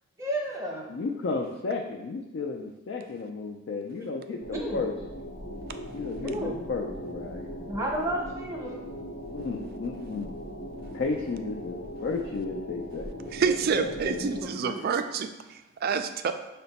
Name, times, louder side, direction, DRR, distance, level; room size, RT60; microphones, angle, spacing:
voice 1, 0.2-0.9 4.5-4.8 6.2-6.6 7.6-8.8 14.1-14.7, right 1 dB, 15° right, -1 dB, 0.7 m, -32 dB
voice 2, 0.9-4.9 5.9-7.5 9.3-10.3 10.9-14.2 14.8-14.9, left 4 dB, 60° left, 1 dB, 0.4 m, -33 dB
sound 1, 4.4-14.5, equal, 90° left, 0.8 m, -39 dB
voice 3, 13.3-16.3, right 6 dB, 50° right, 8 dB, 0.3 m, -28 dB
5.7 x 2.2 x 4.0 m, 0.99 s
head